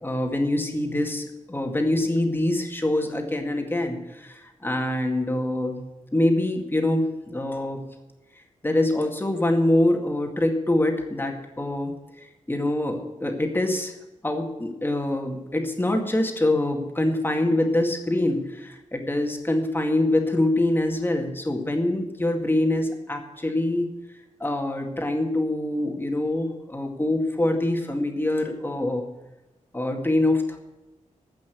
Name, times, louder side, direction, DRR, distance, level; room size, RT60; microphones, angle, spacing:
voice 1, 0.0-5.8 6.1-7.8 8.6-11.9 12.5-13.9 14.2-23.9 24.4-29.1 29.7-30.6, left 1 dB, 15° left, 3 dB, 2.1 m, -24 dB
15.5 x 6.0 x 8.3 m, 1.1 s
wide cardioid pair, 105°, 13 cm